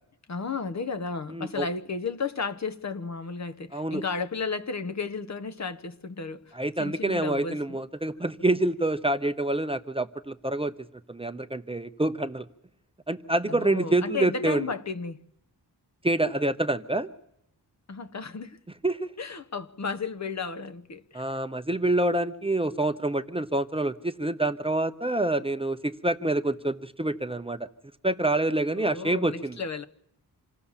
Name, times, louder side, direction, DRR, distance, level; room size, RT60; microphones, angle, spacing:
voice 1, 0.3-6.5 6.8-7.8 13.5-15.2 17.9-18.6 19.2-21.3 28.7-29.9, left 4 dB, 45° left, 1.1 m, -33 dB
voice 2, 1.3-1.7 3.7-4.0 6.5-10.7 11.1-12.5 13.1-14.7 16.0-17.1 18.8-19.1 21.1-27.7 28.0-29.6, right 2 dB, 15° right, 0.8 m, -27 dB
27.5 x 17.0 x 7.3 m
wide cardioid pair, 125°, 39 cm